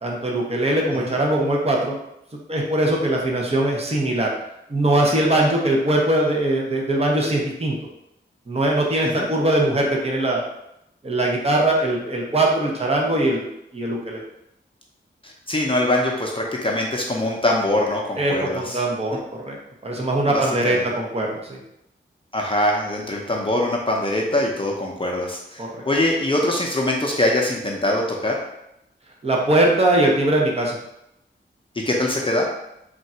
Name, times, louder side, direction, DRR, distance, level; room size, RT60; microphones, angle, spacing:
voice 1, 0.0-2.0 2.5-4.3 4.7-7.7 8.5-10.4 11.0-13.5 13.7-14.2 18.2-19.2 19.4-19.6 19.8-21.6 25.6-25.8 29.2-30.8, right 1 dB, 30° right, -1 dB, 0.8 m, -21 dB
voice 2, 15.2-18.8 20.7-20.9 22.3-28.3 31.7-32.5, left 1 dB, 25° left, -1 dB, 0.6 m, -23 dB
3.6 x 2.4 x 4.2 m, 0.82 s
wide cardioid pair, 65°, 20 cm